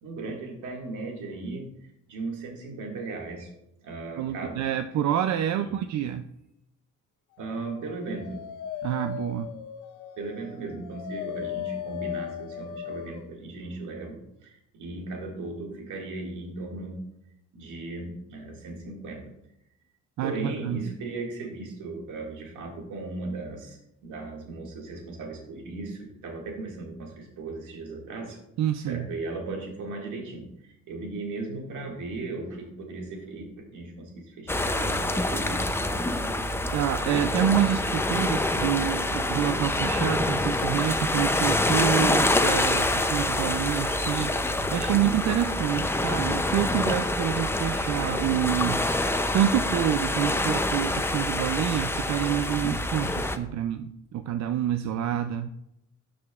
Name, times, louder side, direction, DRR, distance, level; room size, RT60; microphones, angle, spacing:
voice 1, 0.0-3.5 3.8-4.6 5.6-5.8 7.4-8.4 10.2-17.0 17.5-19.3 20.2-28.4 28.8-35.7, right 3 dB, 80° right, 0 dB, 2.1 m, -37 dB
voice 2, 4.2-6.2 8.8-9.5 20.2-20.9 28.6-29.1 36.7-48.8 49.3-55.5, right 10 dB, 65° right, 9 dB, 0.5 m, -27 dB
Dog, 7.7-13.3, left 10 dB, 85° left, 0.6 m, -37 dB
sound 1, 34.5-53.4, left 1 dB, 10° left, 0.5 m, -26 dB
12.5 x 5.0 x 2.4 m, 0.81 s
cardioid pair, 90°, 30 cm